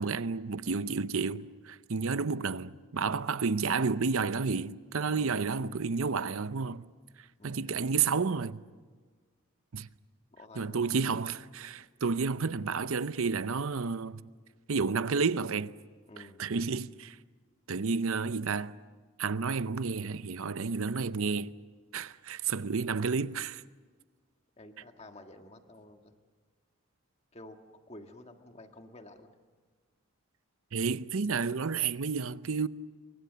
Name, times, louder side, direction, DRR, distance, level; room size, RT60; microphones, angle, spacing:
voice 1, 0.0-1.4 1.9-6.8 7.4-8.6 9.7-9.9 10.6-14.2 14.7-15.7 16.2-17.2 17.7-18.7 19.2-21.5 21.9-23.6 30.7-32.7, right 5 dB, 70° right, 0.7 m, -31 dB
voice 2, 5.1-5.5 7.4-8.0 10.3-10.9 16.1-16.5 24.6-26.1 27.3-27.6 27.9-29.3, left 1 dB, 30° left, 1.7 m, -51 dB
28.0 x 24.0 x 6.8 m
head